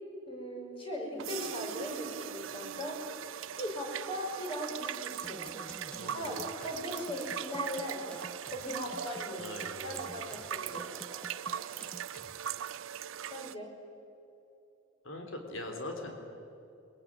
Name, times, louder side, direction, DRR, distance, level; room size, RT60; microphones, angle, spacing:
voice 1, 0.3-3.0 3.6-10.9 13.3-13.7, equal, 25° left, 1 dB, 5.6 m, -39 dB
sound 1, 1.2-13.5, right 9 dB, 85° right, 0.5 m, -40 dB
sound 2, 5.2-12.6, left 1 dB, 5° left, 1.0 m, -50 dB
voice 2, 6.0-6.3 9.4-10.1 15.0-16.2, left 1 dB, 80° left, 4 dB, 3.5 m, -41 dB
22.0 x 21.5 x 9.8 m, 2.8 s
head